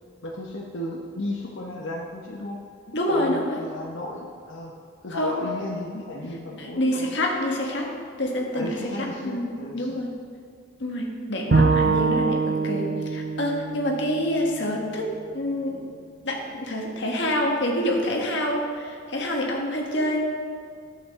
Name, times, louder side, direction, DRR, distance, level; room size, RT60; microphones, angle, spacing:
voice 1, 0.2-2.6 3.1-4.7 5.0-7.2 8.5-10.1 11.5-11.8, left 1 dB, 90° left, -3 dB, 0.9 m, -34 dB
voice 2, 2.9-3.6 5.1-5.4 6.6-7.9 8.2-8.7 9.0-10.1 10.8-15.9 16.2-20.2, left 1 dB, 70° left, 0 dB, 1.5 m, -27 dB
Bowed string instrument, 11.5-14.8, right 4 dB, 60° right, 0.8 m, -24 dB
11.0 x 7.9 x 3.6 m, 2.2 s
head